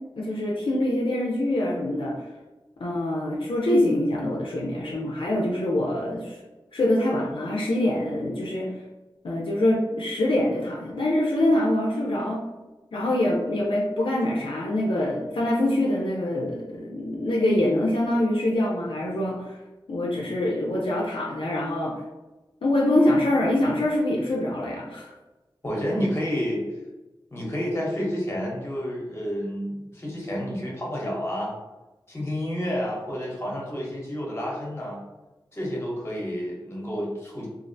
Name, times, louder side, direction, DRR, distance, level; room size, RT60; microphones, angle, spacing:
voice 1, 0.2-2.2 2.8-6.4 6.7-8.7 9.2-12.4 12.9-19.6 19.9-22.0 22.6-25.1, left 1 dB, 75° left, -3 dB, 0.4 m, -24 dB
voice 2, 25.6-26.7 27.3-31.6 32.1-35.0 35.5-37.5, equal, 30° left, -3 dB, 0.8 m, -30 dB
2.4 x 2.0 x 2.6 m, 1.1 s
wide cardioid pair, 55°, 9 cm